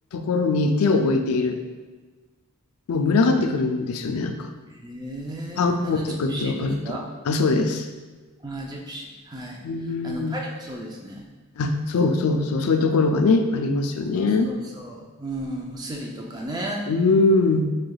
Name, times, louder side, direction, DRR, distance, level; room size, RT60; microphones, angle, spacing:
voice 1, 0.1-1.6 2.9-4.5 5.6-7.0 7.3-7.9 9.6-10.4 11.6-14.5 16.9-17.7, left 3 dB, 80° left, 5 dB, 0.4 m, -22 dB
voice 2, 4.7-7.1 8.4-9.6 10.0-11.3 14.1-16.9, right 1 dB, 20° right, -1 dB, 0.4 m, -34 dB
4.6 x 3.2 x 2.3 m, 1.3 s
head